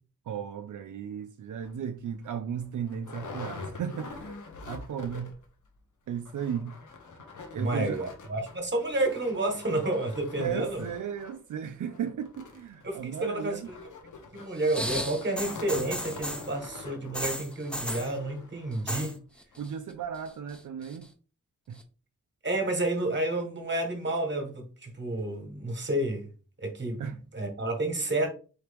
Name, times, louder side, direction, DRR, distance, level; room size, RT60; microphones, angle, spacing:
voice 1, 0.3-4.3 4.7-5.4 6.1-6.8 7.5-8.0 10.4-13.7 19.6-21.1 21.7-21.8 27.0-27.2, right 8 dB, 80° right, 0.5 m, -35 dB
sound 1, 1.6-1.7 2.2-2.3 2.5-5.5 5.8-5.9 6.1-18.9 19.5-19.6 20.0-20.1, left 4 dB, 75° left, 0.9 m, -45 dB
voice 2, 7.5-10.9 12.8-13.9 14.3-19.2 22.4-26.3 26.6-28.3, right 1 dB, 35° right, 1.3 m, -30 dB
sound 2, 14.6-16.5 17.1-18.1 18.7-19.1 19.4-19.9 20.3-21.0 21.8-21.9, equal, 5° left, 0.7 m, -35 dB
4.8 x 3.0 x 3.4 m
wide cardioid pair, 130°, 30 cm